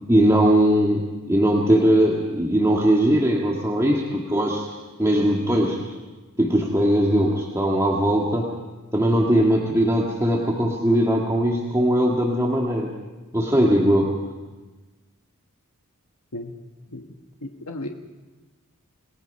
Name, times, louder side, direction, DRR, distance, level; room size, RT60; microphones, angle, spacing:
voice 1, 0.1-1.0 1.3-4.7 5.0-5.9 6.4-8.5 8.9-12.9 13.3-14.2, equal, 15° right, -2 dB, 1.9 m, -20 dB
voice 2, 17.4-17.9, left 1 dB, 90° left, 3 dB, 1.4 m, -34 dB
29.0 x 19.0 x 5.5 m, 1.3 s
head